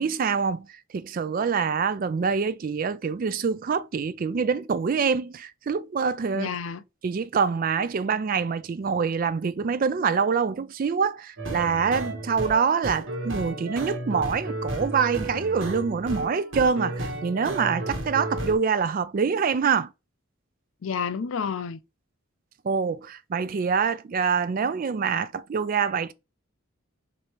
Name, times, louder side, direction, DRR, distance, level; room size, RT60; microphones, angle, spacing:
voice 1, 0.0-6.5 7.0-19.9 22.6-26.1, right 6 dB, 40° right, 0.3 m, -25 dB
voice 2, 6.3-6.8 20.8-21.8, left 6 dB, 75° left, 0.5 m, -30 dB
sound 1, 11.4-18.6, right 1 dB, 65° right, 1.3 m, -33 dB
6.4 x 2.7 x 3.0 m
head